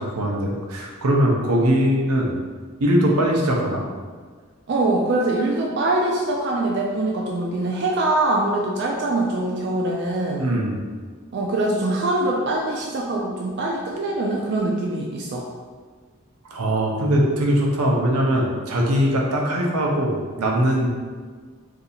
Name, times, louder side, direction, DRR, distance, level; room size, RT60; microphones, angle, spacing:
voice 1, 0.0-2.3 2.8-3.8 10.4-10.8 16.5-20.9, equal, 85° right, -1 dB, 0.7 m, -21 dB
voice 2, 4.7-10.5 11.3-15.5, right 2 dB, 50° right, -2 dB, 0.3 m, -23 dB
2.7 x 2.6 x 4.1 m, 1.5 s
head